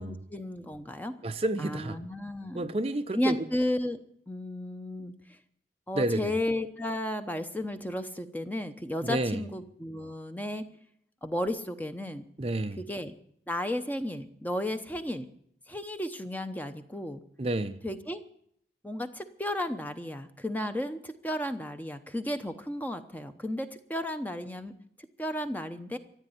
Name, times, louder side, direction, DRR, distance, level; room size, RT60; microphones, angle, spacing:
voice 1, 0.0-1.2 1.6-2.7 3.1-4.0 4.3-5.1 5.9-10.7 11.2-12.3 12.8-13.1 13.5-15.3 15.7-17.2 17.8-18.2 18.8-24.7 25.2-26.0, left 1 dB, 10° left, 0.8 m, -33 dB
voice 2, 1.2-2.1 2.5-3.5 5.9-6.4 9.0-9.4 12.4-12.8 17.4-17.8, right 2 dB, 35° right, 0.6 m, -30 dB
14.5 x 8.8 x 9.8 m
head